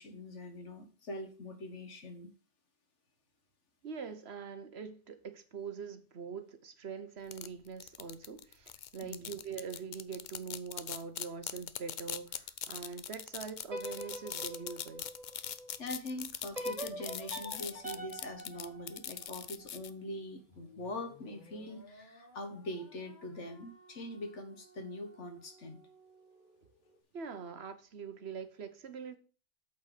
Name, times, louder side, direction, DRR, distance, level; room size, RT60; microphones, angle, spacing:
voice 1, 0.0-2.3 9.0-9.3 15.8-25.8, left 1 dB, 75° left, 1.8 m, -43 dB
voice 2, 3.8-15.0 27.1-29.2, right 6 dB, 60° right, 1.2 m, -43 dB
sound 1, 7.3-19.9, left 9 dB, 55° left, 0.6 m, -41 dB
sound 2, 13.6-15.8 16.5-19.7, right 1 dB, 30° right, 1.9 m, -43 dB
sound 3, 20.5-27.0, equal, 40° left, 1.8 m, -59 dB
8.3 x 4.6 x 6.6 m
omnidirectional pair, 1.2 m